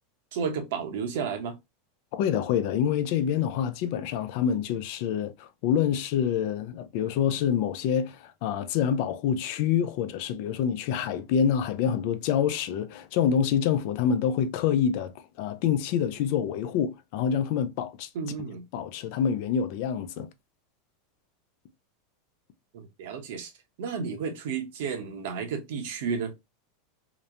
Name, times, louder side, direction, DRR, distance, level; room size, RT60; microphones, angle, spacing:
voice 1, 0.3-1.5 18.1-18.6 22.7-23.5 23.8-26.3, right 6 dB, 70° right, 0.8 m, -32 dB
voice 2, 2.1-18.1 18.7-20.3, left 8 dB, 55° left, 0.4 m, -26 dB
2.9 x 2.1 x 2.4 m
supercardioid pair, 145°, 0 cm